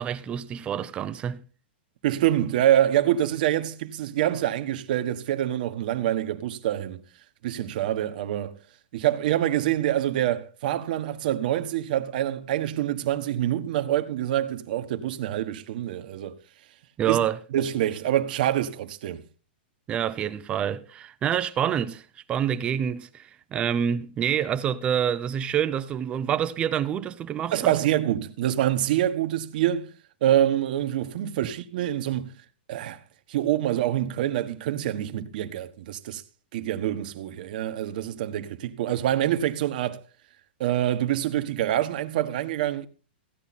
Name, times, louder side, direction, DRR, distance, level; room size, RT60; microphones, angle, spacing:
voice 1, 0.0-1.4 17.0-17.4 19.9-22.0 22.3-27.8, right 9 dB, 20° right, 0.7 m, -27 dB
voice 2, 2.0-7.0 7.4-8.6 8.9-16.3 17.0-17.2 17.5-19.2 27.5-29.9 30.2-32.3 32.7-33.0 33.3-36.2 36.5-40.0 40.6-42.9, right 12 dB, 50° right, 1.3 m, -26 dB
15.5 x 9.9 x 4.3 m
hypercardioid pair, 160°, 6 cm